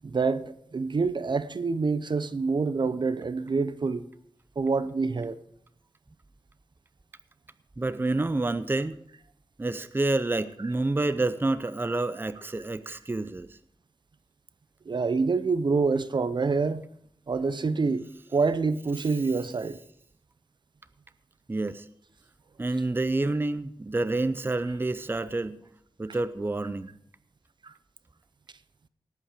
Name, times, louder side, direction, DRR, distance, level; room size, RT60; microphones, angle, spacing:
voice 1, 0.0-4.0 4.6-5.3 14.9-16.8 17.3-18.1 18.3-19.8 27.6-27.7, right 4 dB, 55° right, 0.7 m, -26 dB
voice 2, 7.8-9.0 9.6-13.5 21.5-21.9 22.6-25.6 26.0-26.9, right 2 dB, 25° right, 0.6 m, -28 dB
18.5 x 8.5 x 5.0 m
wide cardioid pair, 75°, 9 cm